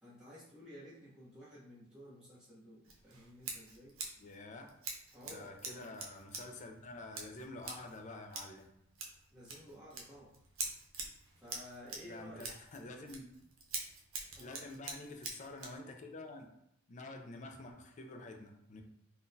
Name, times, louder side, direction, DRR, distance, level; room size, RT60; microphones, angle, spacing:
voice 1, 0.0-4.0 5.1-5.9 9.3-10.3 11.4-12.5 14.3-14.7, equal, 5° right, -10 dB, 1.0 m, -54 dB
Scissors, 2.8-15.8, right 4 dB, 80° right, 0.6 m, -47 dB
voice 2, 4.2-4.7 5.3-8.7 12.0-13.2 14.4-16.5 16.9-18.8, left 2 dB, 35° left, 4 dB, 0.4 m, -48 dB
3.7 x 2.2 x 2.6 m, 0.76 s
head